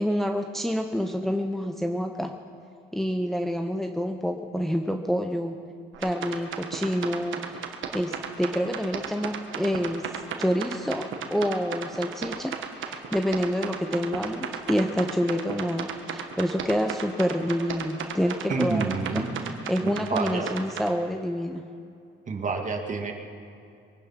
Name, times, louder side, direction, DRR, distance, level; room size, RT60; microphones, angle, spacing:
voice 1, 0.0-2.3 2.9-5.6 6.0-7.6 7.9-10.1 10.4-19.0 19.7-21.6, equal, ahead, 4 dB, 0.7 m, -27 dB
sound 1, 5.9-20.9, right 7 dB, 75° right, 1.4 m, -35 dB
voice 2, 18.5-20.5 22.3-23.1, right 4 dB, 40° right, 3 dB, 2.0 m, -29 dB
22.5 x 9.9 x 5.8 m, 2.6 s
cardioid pair, 90°, 20 cm